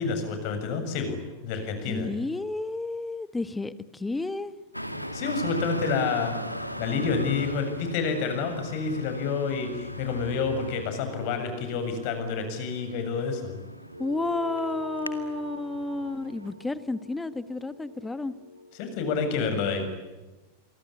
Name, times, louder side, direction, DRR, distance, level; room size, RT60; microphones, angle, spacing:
voice 1, 0.0-2.1 5.1-6.4 6.8-13.6 18.8-19.9, left 5 dB, 45° left, 7 dB, 7.2 m, -29 dB
voice 2, 1.9-4.6 14.0-18.3, left 2 dB, 10° left, 15 dB, 1.4 m, -31 dB
Traffic noise roadway noise, 4.7-16.5, equal, 90° left, 2.2 m, -39 dB
sound 1, 13.9-18.7, left 1 dB, 80° right, 7.4 m, -41 dB
28.5 x 24.0 x 8.6 m, 1.2 s
figure-of-eight pair, 90°, 0 cm